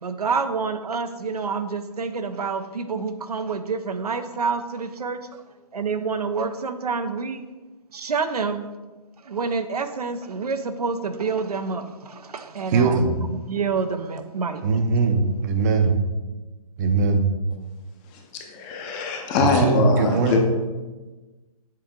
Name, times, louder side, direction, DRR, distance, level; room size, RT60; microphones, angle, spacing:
voice 1, 0.0-5.2 5.7-7.4 7.9-8.7 9.2-14.6, right 5 dB, 85° right, 9 dB, 0.6 m, -28 dB
voice 2, 12.7-13.1 14.6-15.9 16.8-17.3 19.4-20.4, right 4 dB, 30° right, 7 dB, 0.6 m, -20 dB
voice 3, 18.5-20.4, left 4 dB, 20° left, 3 dB, 0.6 m, -23 dB
7.5 x 3.5 x 3.7 m, 1.2 s
hypercardioid pair, 140°, 19 cm